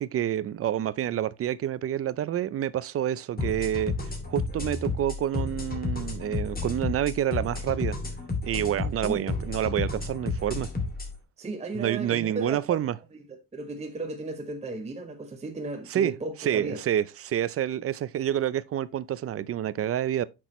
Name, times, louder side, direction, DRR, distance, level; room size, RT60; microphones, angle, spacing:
voice 1, 0.0-3.9 4.3-8.0 8.4-10.7 11.7-13.0 15.9-16.1 16.4-20.2, right 11 dB, 35° right, 0.5 m, -28 dB
sound 1, 3.4-11.1, left 3 dB, 20° left, 2.4 m, -31 dB
voice 2, 11.4-12.8 13.3-16.8, right 2 dB, 15° right, 0.9 m, -35 dB
8.2 x 6.1 x 3.0 m
cardioid pair, 110°, 39 cm